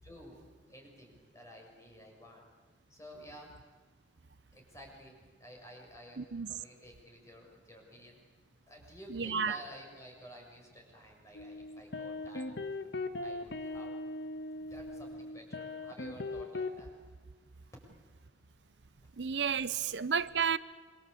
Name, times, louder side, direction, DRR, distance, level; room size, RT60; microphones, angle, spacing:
voice 1, 0.0-2.5 2.9-3.5 4.5-8.2 8.7-12.5 13.2-14.0 14.6-16.9 19.0-19.1, equal, 20° left, 6.9 m, -52 dB
voice 2, 6.2-6.5 9.1-9.6 19.2-20.6, right 6 dB, 85° right, 0.8 m, -31 dB
sound 1, 11.3-16.8, left 2 dB, 80° left, 1.6 m, -39 dB
27.5 x 24.0 x 8.5 m
head